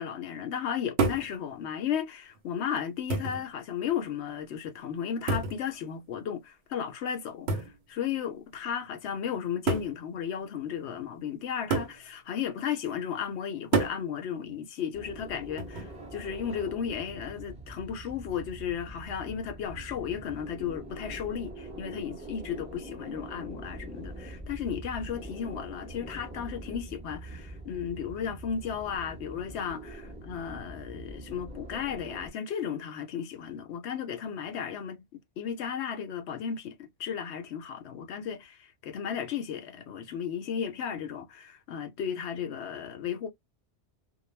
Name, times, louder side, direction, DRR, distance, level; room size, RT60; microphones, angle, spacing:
voice 1, 0.0-43.3, left 8 dB, 75° left, 0.9 m, -34 dB
sound 1, 1.0-1.3 2.4-2.5 3.1-3.5 5.3-5.6 7.5-7.8 8.8-8.9 9.7-10.0 11.7-12.0 13.7-14.0 15.6-16.0, right 3 dB, 70° right, 0.9 m, -28 dB
sound 2, 14.9-32.3, right 1 dB, 5° right, 0.7 m, -44 dB
2.3 x 2.1 x 3.1 m
omnidirectional pair, 1.2 m